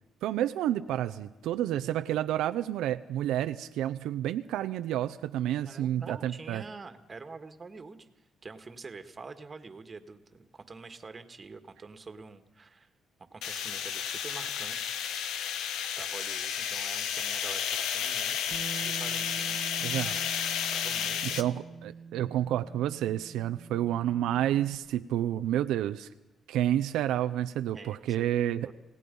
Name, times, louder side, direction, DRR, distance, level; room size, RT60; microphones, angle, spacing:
voice 1, 0.2-6.6 19.8-20.1 21.4-26.1 26.5-28.7, right 12 dB, 90° right, 9 dB, 0.7 m, -30 dB
voice 2, 5.6-8.1 8.4-12.9 13.3-15.4 16.0-20.3 20.7-21.5 27.7-28.3 28.7-28.8, right 4 dB, 30° right, 9 dB, 1.9 m, -46 dB
sound 1, 13.4-21.4, left 8 dB, 85° left, 1.2 m, -32 dB
Bass guitar, 18.5-24.8, right 6 dB, 55° right, 1.4 m, -45 dB
28.0 x 17.5 x 5.5 m, 1.0 s
cardioid pair, 90°, 0 cm